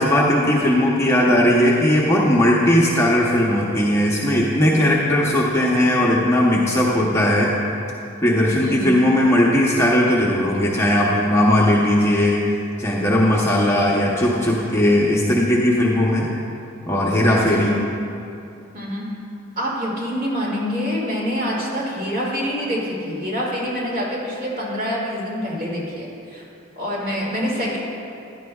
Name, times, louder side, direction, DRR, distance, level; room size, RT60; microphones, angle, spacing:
voice 1, 0.0-7.5 8.2-12.4 12.8-16.3 16.9-17.7, left 1 dB, 15° left, -4 dB, 0.8 m, -18 dB
voice 2, 8.6-9.0 17.4-17.8 18.7-19.1 19.6-26.4 26.8-27.8, equal, 40° right, -4 dB, 2.3 m, -26 dB
15.0 x 10.5 x 2.3 m, 2.7 s
head